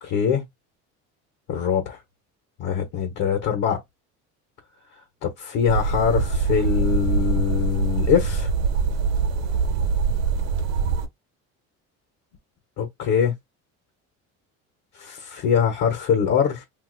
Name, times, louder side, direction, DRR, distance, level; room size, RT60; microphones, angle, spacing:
voice 1, 0.0-0.4 1.5-2.0 2.6-3.8 5.2-8.5 12.8-13.3 15.0-16.6, left 7 dB, 60° left, 1.2 m, -23 dB
sound 1, 5.7-11.1, right 5 dB, 85° right, 0.9 m, -23 dB
2.8 x 2.4 x 3.8 m
cardioid pair, 130°, 33 cm